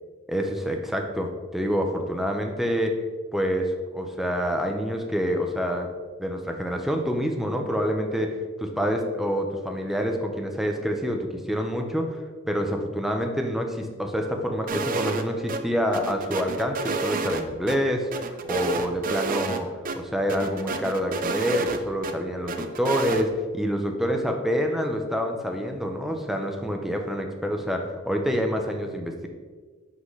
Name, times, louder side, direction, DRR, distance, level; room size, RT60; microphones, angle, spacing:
voice 1, 0.3-2.9 3.3-5.9 6.2-8.3 8.6-12.2 12.5-18.1 18.4-19.7 20.0-29.3, equal, ahead, 3 dB, 0.6 m, -27 dB
sound 1, 14.7-15.2 15.5-15.6 15.9-17.8 18.1-19.6 19.9-20.0 20.3-22.1 22.5-23.2, right 4 dB, 40° right, 0.5 m, -29 dB
11.0 x 4.0 x 3.2 m, 1.4 s
head